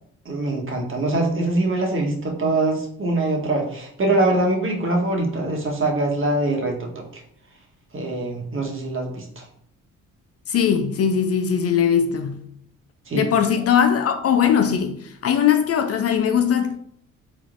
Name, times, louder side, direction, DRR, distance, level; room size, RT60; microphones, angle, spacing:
voice 1, 0.2-7.2 7.9-9.4 13.1-13.3, right 2 dB, 35° right, 1.2 m, -23 dB
voice 2, 10.5-12.5 13.1-16.8, left 8 dB, 45° left, 0.4 m, -20 dB
4.0 x 3.3 x 2.5 m
hypercardioid pair, 50°, 35 cm